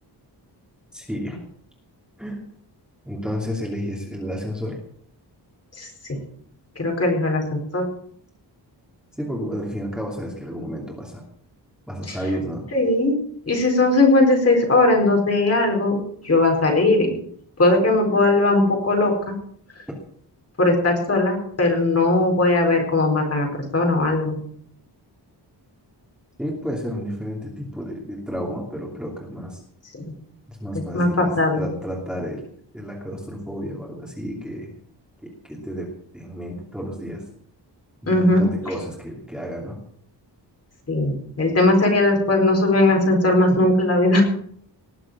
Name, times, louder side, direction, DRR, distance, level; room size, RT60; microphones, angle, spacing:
voice 1, 0.9-1.4 2.2-2.4 3.1-4.8 9.2-11.2 11.9-12.7 26.4-29.6 30.5-32.5 32.7-34.7 35.2-37.2 38.0-39.8, equal, ahead, -1 dB, 2.8 m, -31 dB
voice 2, 6.8-7.8 12.1-12.2 12.7-13.2 13.5-16.0 16.2-17.1 17.6-19.3 20.6-23.5 23.7-24.4 29.9-30.1 30.9-31.6 38.1-38.5 40.9-44.2, left 2 dB, 35° left, 1 dB, 4.5 m, -19 dB
19.5 x 7.5 x 7.4 m, 0.63 s
wide cardioid pair, 175°, 42 cm